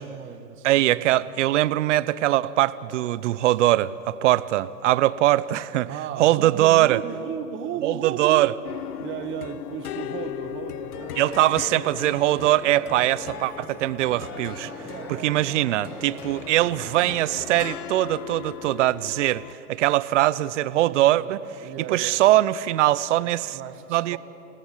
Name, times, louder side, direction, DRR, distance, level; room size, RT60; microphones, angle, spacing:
voice 1, 0.0-1.2 5.9-8.5 9.0-11.2 14.8-15.5 20.7-22.4 23.2-24.2, right 9 dB, 25° right, 7 dB, 1.6 m, -35 dB
voice 2, 0.6-5.9 6.2-7.0 7.8-8.5 11.2-14.7 15.1-19.4 19.7-21.4 21.9-23.6 23.9-24.2, right 15 dB, 45° right, 17 dB, 0.9 m, -21 dB
sound 1, 8.6-19.5, left 12 dB, 65° left, 1.0 m, -38 dB
sound 2, 11.0-17.8, right 3 dB, 5° right, 0.8 m, -43 dB
29.0 x 18.0 x 10.0 m, 2.9 s
hypercardioid pair, 125°, 48 cm